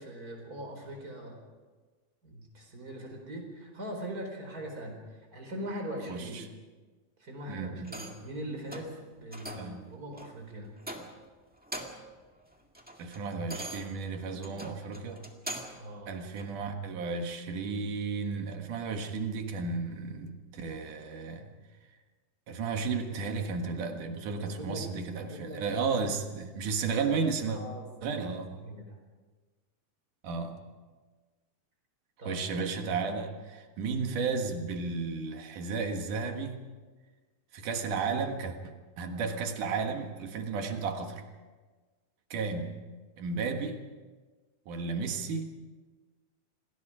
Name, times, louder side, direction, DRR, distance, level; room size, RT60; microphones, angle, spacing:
voice 1, 0.0-1.4 2.2-6.5 7.2-10.7 14.3-14.5 15.8-16.2 24.4-24.9 25.2-25.6 27.5-29.0 32.2-32.4, right 1 dB, 25° right, 2 dB, 4.7 m, -41 dB
voice 2, 6.1-6.5 7.5-8.0 9.6-9.9 13.0-15.2 16.1-21.5 22.5-27.6 28.0-28.5 30.2-30.6 32.2-36.7 37.5-41.3 42.3-42.8 43.2-43.8 44.7-45.5, right 4 dB, 80° right, 5 dB, 3.2 m, -33 dB
sound 1, 7.8-8.3 8.7-9.0 9.3-9.8 10.2-10.3 10.8-11.3 11.6-12.1 12.5-15.9 16.4-16.5, right 1 dB, 5° right, 1.0 m, -42 dB
27.5 x 19.5 x 5.0 m, 1.3 s
omnidirectional pair, 3.6 m